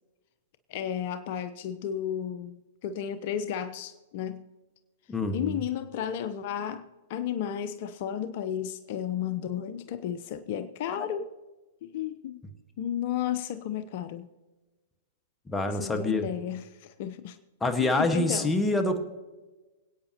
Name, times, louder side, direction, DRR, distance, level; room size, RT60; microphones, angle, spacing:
voice 1, 0.7-4.4 5.3-11.3 11.8-12.4 12.8-14.3 15.7-17.4 17.8-18.5, left 9 dB, 55° left, 11 dB, 0.7 m, -33 dB
voice 2, 5.1-5.6 15.5-16.2 17.6-19.0, left 2 dB, 15° left, 7 dB, 1.4 m, -26 dB
24.5 x 8.9 x 2.9 m, 1.2 s
hypercardioid pair, 115°, 0 cm